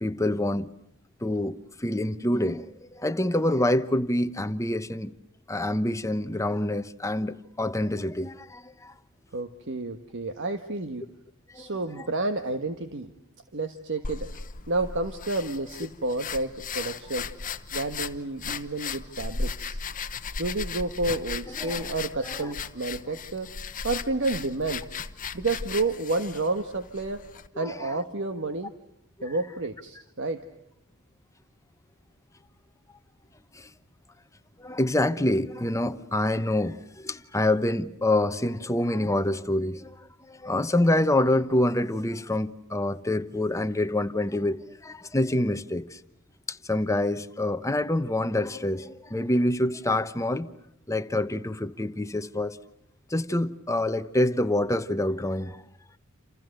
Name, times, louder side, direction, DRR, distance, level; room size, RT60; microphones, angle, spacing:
voice 1, 0.0-0.7 1.2-5.1 5.5-8.9 11.5-11.7 12.0-12.1 21.6-21.9 22.2-22.5 27.5-28.0 33.5-33.7 34.6-40.0 40.3-46.0 46.5-50.5 50.9-52.6 53.1-55.6, left 1 dB, 15° left, 1.0 m, -26 dB
voice 2, 9.3-11.0 11.5-13.1 13.5-14.3 14.7-17.3 17.7-19.8 20.4-23.5 23.8-24.9 25.3-27.2 27.6-28.7 29.2-30.4, right 2 dB, 60° right, 1.4 m, -30 dB
sound 1, 14.0-27.5, left 5 dB, 40° left, 1.1 m, -36 dB
28.5 x 28.5 x 6.7 m
head